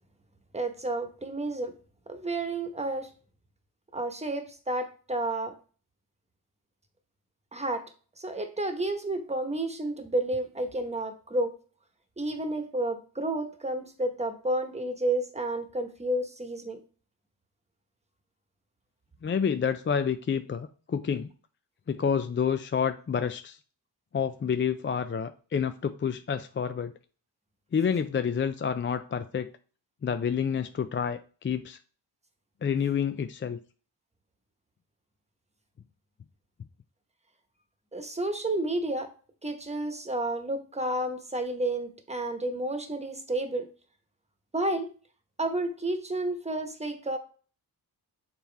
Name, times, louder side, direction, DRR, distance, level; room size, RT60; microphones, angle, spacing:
voice 1, 0.5-1.7 2.1-3.1 3.9-5.5 7.5-7.8 8.2-11.5 12.2-16.8 37.9-39.1 39.4-43.7 44.5-44.9 45.4-47.2, right 1 dB, 15° right, 1.2 m, -31 dB
voice 2, 19.2-21.3 21.9-23.6 24.1-26.9 27.7-29.5 30.0-31.8 32.6-33.6, left 7 dB, 30° left, 0.4 m, -29 dB
6.8 x 4.3 x 3.4 m
cardioid pair, 75°, 40 cm